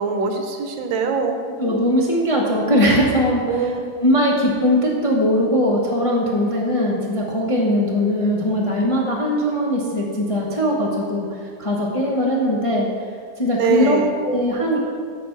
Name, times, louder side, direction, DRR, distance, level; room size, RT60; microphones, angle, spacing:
voice 1, 0.0-1.4 3.5-3.8 13.5-14.1, right 4 dB, 75° right, 5 dB, 1.5 m, -22 dB
voice 2, 1.6-3.7 4.0-11.3 11.6-12.9 13.4-14.8, equal, 30° left, -4 dB, 0.6 m, -20 dB
9.2 x 5.9 x 4.5 m, 2.1 s
omnidirectional pair, 2.1 m